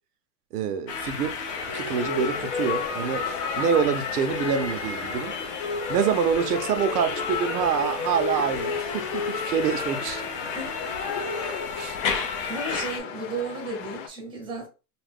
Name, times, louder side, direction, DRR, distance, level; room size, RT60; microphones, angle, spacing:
voice 1, 0.5-1.4 1.7-3.2 3.6-5.3 5.9-10.2 11.8-11.9, right 7 dB, 90° right, 0.7 m, -26 dB
sound 1, 0.9-13.0, left 4 dB, 30° left, 0.4 m, -31 dB
sound 2, 1.5-14.1, left 6 dB, 65° left, 0.8 m, -37 dB
voice 2, 10.5-10.8 11.3-11.9 12.3-14.7, right 3 dB, 10° right, 0.7 m, -35 dB
2.7 x 2.3 x 3.5 m
supercardioid pair, 145°, 45 cm